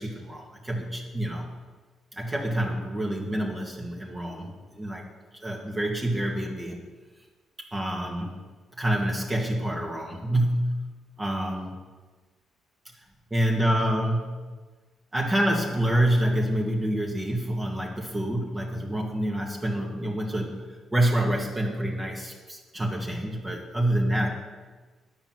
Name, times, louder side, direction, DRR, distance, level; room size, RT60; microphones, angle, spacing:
voice 1, 0.0-1.5 2.1-5.0 5.3-6.8 7.7-8.4 8.8-10.8 11.2-11.8 13.3-14.4 15.1-20.6 20.9-24.3, right 1 dB, 20° right, -1 dB, 1.9 m, -27 dB
10.5 x 6.1 x 7.5 m, 1.3 s
cardioid pair, 90°, 0 cm